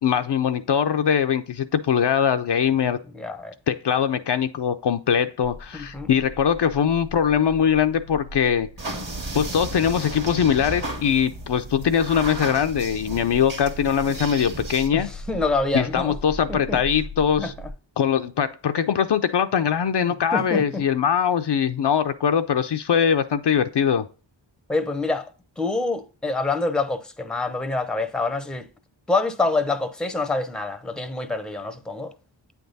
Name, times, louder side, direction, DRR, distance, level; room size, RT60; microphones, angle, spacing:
voice 1, 0.0-3.0 3.7-8.7 9.3-15.1 15.7-17.5 18.0-24.1, left 8 dB, 60° left, 0.5 m, -22 dB
voice 2, 3.1-3.5 5.7-6.1 14.9-16.2 16.5-16.8 17.4-17.5 20.3-20.8 24.7-25.3 25.6-28.7 29.1-32.1, left 3 dB, ahead, 0.6 m, -26 dB
sound 1, 5.4-17.7, equal, 60° right, 1.2 m, -40 dB
sound 2, 8.8-14.9, right 2 dB, 45° right, 1.6 m, -35 dB
8.5 x 3.5 x 3.9 m
wide cardioid pair, 55°, 47 cm